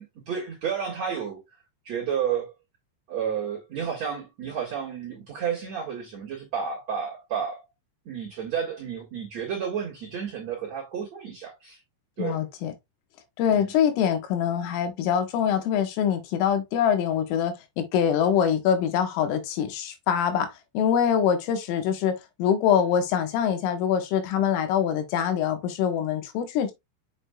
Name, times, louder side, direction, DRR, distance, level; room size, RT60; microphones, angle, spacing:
voice 1, 0.0-1.4 1.8-2.5 3.1-7.6 8.1-11.8 12.2-12.4 13.5-13.7, right 7 dB, 55° right, 2.0 m, -31 dB
voice 2, 12.2-12.7 13.4-26.7, left 8 dB, 80° left, 4.0 m, -24 dB
7.4 x 6.5 x 2.3 m
omnidirectional pair, 5.8 m